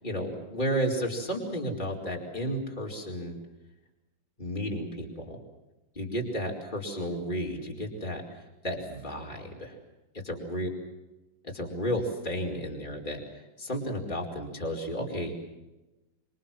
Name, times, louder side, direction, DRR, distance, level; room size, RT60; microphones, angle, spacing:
voice 1, 0.0-3.3 4.4-5.4 5.9-8.2 8.6-9.7 10.2-10.7 11.5-13.2 13.6-15.3, equal, 25° left, -1 dB, 4.8 m, -32 dB
26.5 x 26.0 x 7.6 m, 1.0 s
omnidirectional pair, 2.0 m